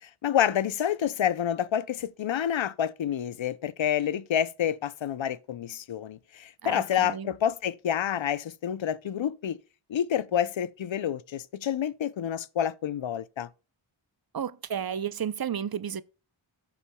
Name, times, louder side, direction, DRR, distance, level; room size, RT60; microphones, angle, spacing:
voice 1, 0.0-9.6 9.9-13.5, left 9 dB, 65° left, 0.6 m, -28 dB
voice 2, 6.6-7.3 14.3-16.0, right 8 dB, 50° right, 0.6 m, -32 dB
14.0 x 7.1 x 2.2 m
cardioid pair, 40°, 49 cm